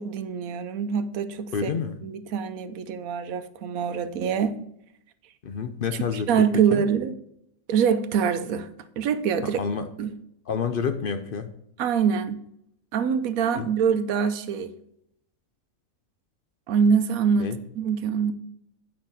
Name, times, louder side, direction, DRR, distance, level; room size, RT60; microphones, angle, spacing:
voice 1, 0.0-1.7 2.0-4.6 6.1-7.2 7.7-8.7 9.0-10.2 11.8-12.4 12.9-14.7 16.7-17.5 17.7-18.3, right 7 dB, 75° right, 1.1 m, -24 dB
voice 2, 1.5-2.0 5.4-6.8 9.6-9.8 10.5-11.5 13.5-13.7 17.4-17.6, left 6 dB, 55° left, 0.6 m, -28 dB
8.8 x 6.2 x 4.0 m
omnidirectional pair, 1.5 m